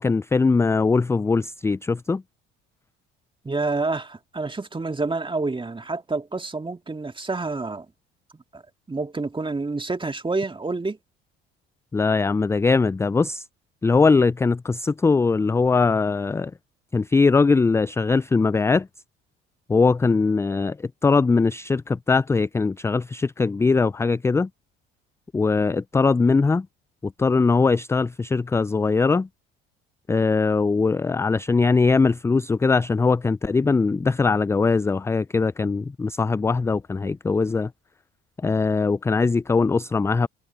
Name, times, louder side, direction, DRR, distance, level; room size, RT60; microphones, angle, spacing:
voice 1, 0.0-2.2 11.9-13.4 13.8-16.5 16.9-18.9 19.7-20.8 21.0-24.5 25.3-26.7 27.0-29.3 30.1-37.7 38.4-40.3, left 4 dB, 10° left, 0.3 m, -21 dB
voice 2, 3.4-7.9 8.3-8.6 8.9-11.0, right 3 dB, 15° right, 2.1 m, -28 dB
hypercardioid pair, 55°, 30 cm